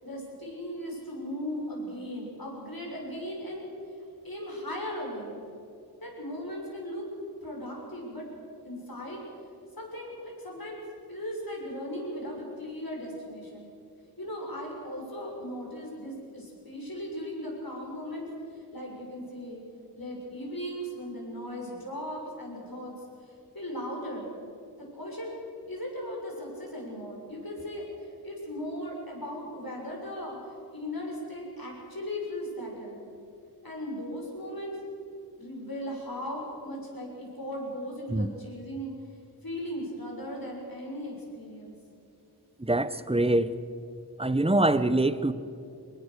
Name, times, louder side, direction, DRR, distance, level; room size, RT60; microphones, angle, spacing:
voice 1, 0.0-3.7 4.2-5.4 6.0-7.1 7.4-8.3 8.6-9.2 9.7-10.8 11.1-13.7 14.2-19.6 19.9-22.9 23.2-24.3 24.8-25.4 25.7-30.4 30.7-33.0 33.6-34.8 35.4-39.0 39.4-41.8, equal, 60° left, -2 dB, 6.9 m, -37 dB
voice 2, 42.6-43.5 44.2-45.3, right 2 dB, 15° right, 13 dB, 0.9 m, -24 dB
24.5 x 20.0 x 6.8 m, 2.6 s
wide cardioid pair, 50°, 40 cm